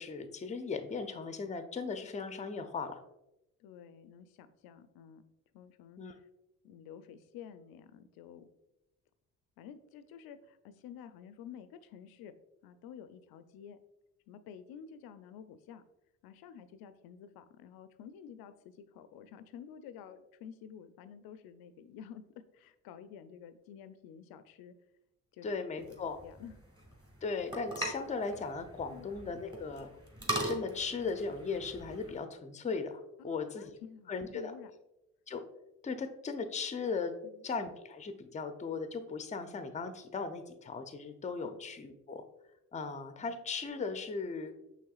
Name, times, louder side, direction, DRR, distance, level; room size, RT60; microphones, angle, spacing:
voice 1, 0.0-3.0 6.0-6.1 25.4-26.2 27.2-29.9 30.5-33.7 34.1-34.5 35.3-35.4 35.8-37.2 37.4-42.2 42.7-44.5, left 4 dB, 20° left, 8 dB, 0.5 m, -37 dB
voice 2, 3.6-5.2 5.5-6.3 6.6-8.5 9.6-12.3 12.6-13.8 14.3-15.8 16.2-24.7 25.3-25.5 26.2-26.5 28.9-29.1 33.2-34.7 37.2-37.4 41.5-41.6 43.2-43.3, left 8 dB, 75° left, 11 dB, 0.5 m, -51 dB
sound 1, 25.8-32.2, right 1 dB, 15° right, 1.5 m, -41 dB
5.7 x 3.2 x 2.4 m, 0.88 s
supercardioid pair, 60°, 36 cm